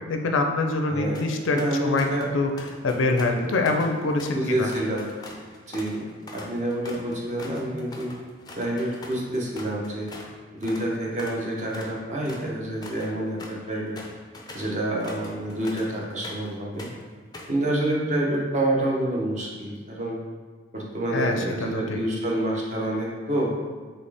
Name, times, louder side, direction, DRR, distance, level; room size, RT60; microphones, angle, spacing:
voice 1, 0.1-2.5 2.8-4.7 21.1-22.0, left 3 dB, 85° left, 4 dB, 0.5 m, -25 dB
voice 2, 0.9-1.2 1.5-2.3 4.3-5.1 5.7-8.1 8.5-10.1 10.5-14.0 14.5-16.9 17.5-20.2 20.7-23.5, right 1 dB, 35° right, -3 dB, 0.7 m, -28 dB
sound 1, 1.1-1.3 1.6-2.3 2.6-10.3 10.6-10.9 11.2-16.5 16.8-17.6, left 2 dB, 20° left, 0.4 m, -43 dB
4.1 x 3.3 x 3.4 m, 1.4 s
head